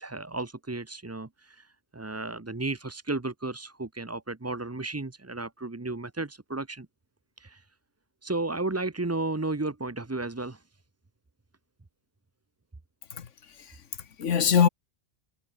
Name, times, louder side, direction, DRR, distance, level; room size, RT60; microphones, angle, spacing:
voice 1, 0.0-6.9 7.4-7.6 8.2-10.6, right 2 dB, 15° right, 0.7 m, -33 dB
voice 2, 13.1-14.7, left 7 dB, 90° left, 1.6 m, -25 dB
omnidirectional pair, 1.2 m